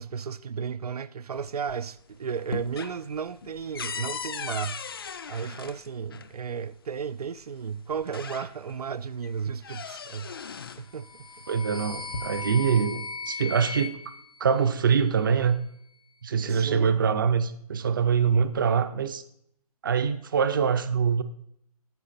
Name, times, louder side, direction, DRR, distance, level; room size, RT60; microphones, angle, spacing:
voice 1, 0.0-4.8 5.3-10.4 10.8-11.3 16.4-17.0, right 6 dB, 75° right, 0.5 m, -34 dB
sound 1, 1.4-2.0 2.3-6.3 7.4-7.5 7.9-8.9 9.2-10.9 11.8-12.6, left 6 dB, 40° left, 0.4 m, -38 dB
sound 2, 10.9-15.2, left 4 dB, 75° left, 0.9 m, -38 dB
voice 2, 11.5-14.0 14.4-15.6 16.2-19.2 19.8-21.2, right 6 dB, 35° right, 0.6 m, -24 dB
13.5 x 5.8 x 4.3 m
hypercardioid pair, 170°, 20 cm